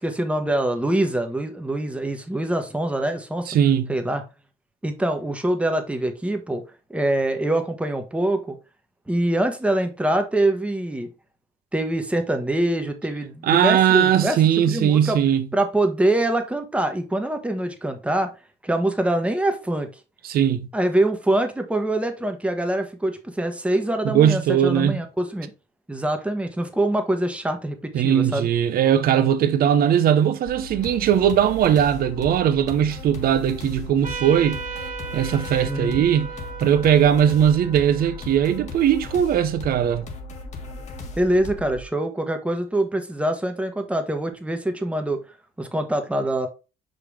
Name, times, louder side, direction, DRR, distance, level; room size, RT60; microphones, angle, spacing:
voice 1, 0.0-3.5 3.9-4.2 4.8-6.6 6.9-8.6 9.1-11.1 11.7-14.4 14.7-15.2 15.5-18.3 18.6-19.9 20.7-25.5 25.9-28.5 35.7-36.0 41.2-45.2 45.6-46.5, right 1 dB, 5° right, 1.2 m, -24 dB
voice 2, 3.5-3.9 13.4-15.5 20.2-20.7 24.0-25.0 27.9-34.6 35.1-36.3 36.6-40.1, right 9 dB, 60° right, 0.8 m, -19 dB
sound 1, 30.5-41.8, left 2 dB, 40° left, 1.7 m, -37 dB
Trumpet, 34.0-39.1, right 5 dB, 45° right, 2.1 m, -37 dB
5.7 x 5.2 x 3.3 m
cardioid pair, 110°, 17 cm